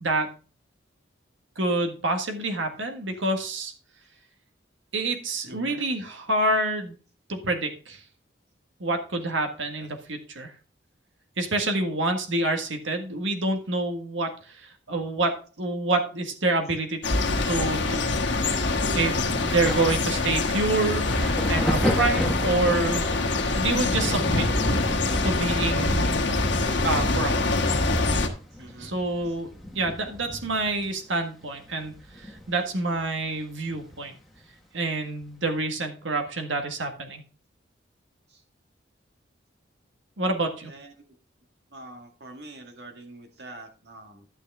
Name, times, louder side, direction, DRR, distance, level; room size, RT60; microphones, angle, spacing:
voice 1, 0.0-0.3 1.6-3.7 4.9-6.9 7.3-8.0 8.8-10.5 11.4-14.3 14.6-17.0 17.5-18.0 19.0-21.0 21.5-23.1 23.6-24.5 25.2-26.3 26.8-27.4 28.8-34.1 34.7-37.2 40.2-40.7, right 2 dB, 80° right, 5 dB, 1.7 m, -27 dB
voice 2, 5.4-5.8 9.7-9.9 28.5-28.9 38.3-38.4 40.7-40.9 41.7-44.3, right 2 dB, 60° right, 4 dB, 2.1 m, -45 dB
sound 1, 17.0-28.3, left 2 dB, 65° left, 1.4 m, -25 dB
Thunder, 19.4-32.8 33.0-34.4 35.2-35.4, equal, ahead, 1.6 m, -34 dB
11.5 x 6.5 x 3.5 m, 0.36 s
head